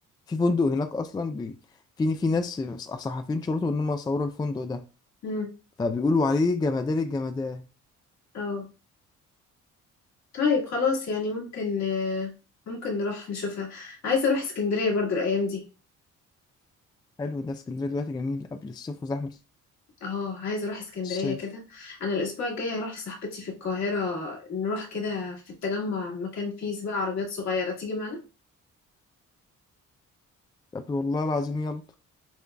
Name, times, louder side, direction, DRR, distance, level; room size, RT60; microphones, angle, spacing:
voice 1, 0.3-1.5 2.0-4.8 5.8-7.6 17.2-19.4 21.0-21.4 30.7-31.8, left 3 dB, 15° left, 0.3 m, -27 dB
voice 2, 8.3-8.7 10.3-12.3 12.7-15.6 20.0-28.2, left 4 dB, 60° left, 1.8 m, -29 dB
6.9 x 2.4 x 2.2 m
cardioid pair, 90°, 30 cm